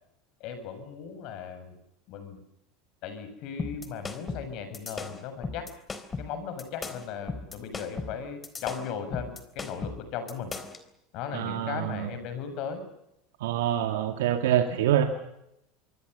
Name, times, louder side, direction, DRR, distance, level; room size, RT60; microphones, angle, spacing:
voice 1, 0.4-1.8 2.1-2.4 3.0-5.7 6.2-10.5 11.1-12.8, left 7 dB, 60° left, 9 dB, 7.2 m, -37 dB
sound 1, 3.6-10.8, left 4 dB, 25° left, 3.8 m, -37 dB
voice 2, 11.3-12.1 13.4-15.0, right 11 dB, 75° right, 6 dB, 2.1 m, -26 dB
27.0 x 23.0 x 6.9 m, 0.83 s
hypercardioid pair, 90°, 0 cm